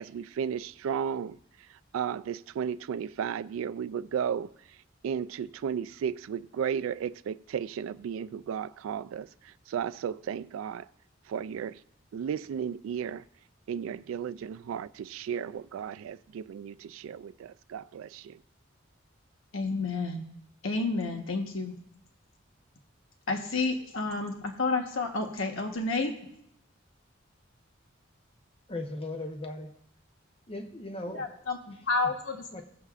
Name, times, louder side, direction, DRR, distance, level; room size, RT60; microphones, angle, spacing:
voice 1, 0.0-1.4 1.7-4.5 5.0-10.9 11.3-11.8 12.1-13.3 13.7-18.4, right 8 dB, 90° right, 0.3 m, -34 dB
voice 2, 19.5-20.3 20.6-21.7 23.3-26.2 31.1-32.6, left 3 dB, 85° left, 1.1 m, -30 dB
voice 3, 28.7-29.8 30.5-31.5 32.5-32.6, left 2 dB, 30° left, 0.8 m, -38 dB
17.5 x 6.7 x 2.4 m
head